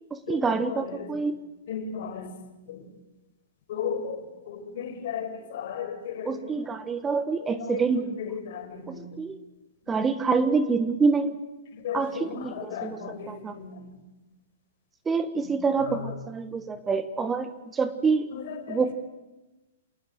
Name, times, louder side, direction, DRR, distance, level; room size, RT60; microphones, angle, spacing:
voice 1, 0.1-1.4 6.2-8.3 8.9-9.4 9.9-11.4 11.9-13.6 15.0-18.3 18.7-18.9, right 4 dB, 15° right, 11 dB, 1.4 m, -27 dB
voice 2, 1.7-2.3 2.7-2.8 3.7-4.2 4.5-6.3 7.7-7.8 8.3-9.1 11.8-13.8 18.7-18.8, left 7 dB, 60° left, 7 dB, 4.9 m, -35 dB
27.0 x 19.0 x 8.0 m, 1.1 s
hypercardioid pair, 130°, 0 cm